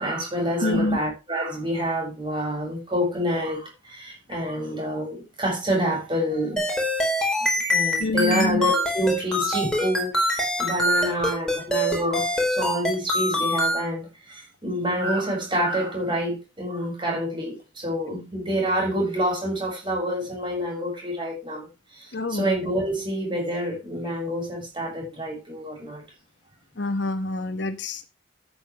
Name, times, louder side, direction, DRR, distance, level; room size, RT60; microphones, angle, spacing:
voice 1, 0.0-6.7 7.7-21.7 21.9-26.0, equal, 25° right, 6.9 m, -27 dB
voice 2, 0.6-1.0 8.0-8.6 22.1-22.5 26.8-28.1, left 2 dB, 65° left, 1.0 m, -26 dB
sound 1, 6.6-13.8, equal, 5° left, 4.8 m, -24 dB
14.0 x 9.8 x 3.2 m
head